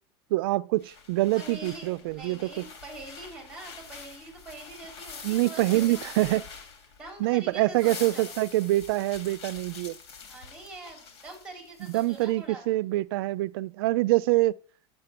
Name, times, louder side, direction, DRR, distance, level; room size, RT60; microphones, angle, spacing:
voice 1, 0.3-2.6 5.2-6.4 7.2-10.0 11.8-14.6, right 18 dB, 65° right, 0.5 m, -25 dB
sound 1, 0.8-7.2 7.6-12.2, left 5 dB, 90° left, 2.8 m, -45 dB
voice 2, 1.4-6.0 7.0-8.4 10.3-12.7, right 2 dB, 5° right, 3.5 m, -44 dB
10.0 x 7.5 x 5.9 m
supercardioid pair, 170°, 13 cm